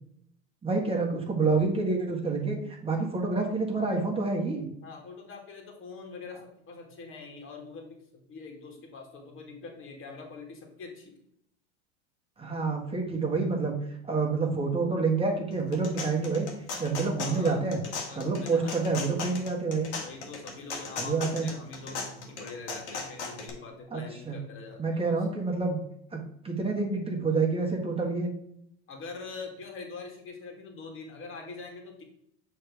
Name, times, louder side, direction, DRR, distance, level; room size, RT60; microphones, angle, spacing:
voice 1, 0.6-2.6 2.8-4.7 12.4-13.7 14.0-16.5 16.8-17.8 18.1-19.9 21.0-21.5 23.9-24.4 24.8-25.8 26.1-28.3, right 4 dB, 15° right, 0 dB, 1.5 m, -28 dB
voice 2, 4.8-11.1 17.2-17.6 18.1-18.9 20.0-25.2 28.9-32.0, left 4 dB, 40° left, 1 dB, 2.1 m, -44 dB
sound 1, 15.5-23.5, left 4 dB, 80° left, 1.5 m, -38 dB
6.5 x 3.5 x 4.8 m, 0.73 s
hypercardioid pair, 95°, 34 cm